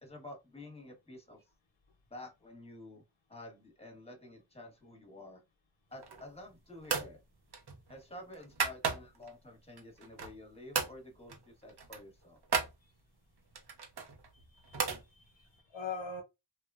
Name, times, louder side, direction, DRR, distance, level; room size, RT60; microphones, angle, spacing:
voice 1, 0.0-1.4 2.1-3.0 3.3-5.4 5.9-7.2 7.9-12.4, left 1 dB, 15° left, 1.1 m, -50 dB
sound 1, 5.9-6.4 6.8-7.2 7.5-9.3 9.8-10.5 10.7-11.0 11.3-11.4 11.7-12.8 13.5-15.0, right 5 dB, 55° right, 0.7 m, -35 dB
voice 2, 14.3-16.2, left 4 dB, 80° left, 0.8 m, -43 dB
3.0 x 2.1 x 2.3 m
wide cardioid pair, 40°, 46 cm